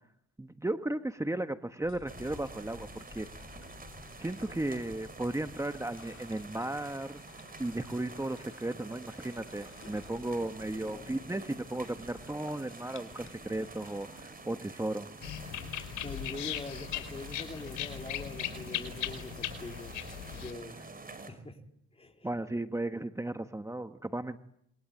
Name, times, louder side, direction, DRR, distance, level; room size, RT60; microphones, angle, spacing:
voice 1, 0.4-3.3 4.2-7.2 7.6-15.1 22.2-24.4, right 1 dB, 10° right, 8 dB, 1.4 m, -35 dB
sound 1, 1.8-14.2, left 4 dB, 45° left, 6.7 m, -54 dB
sound 2, 2.1-21.3, right 3 dB, 30° right, 5.8 m, -48 dB
voice 2, 10.7-11.2 13.2-13.3 15.4-20.0 20.3-20.8 21.3-21.6 21.9-22.3, left 2 dB, 20° left, 4 dB, 4.3 m, -44 dB
sound 3, 15.2-20.5, left 11 dB, 85° left, 4.9 m, -38 dB
27.5 x 23.5 x 8.9 m, 0.72 s
cardioid pair, 90°, 30 cm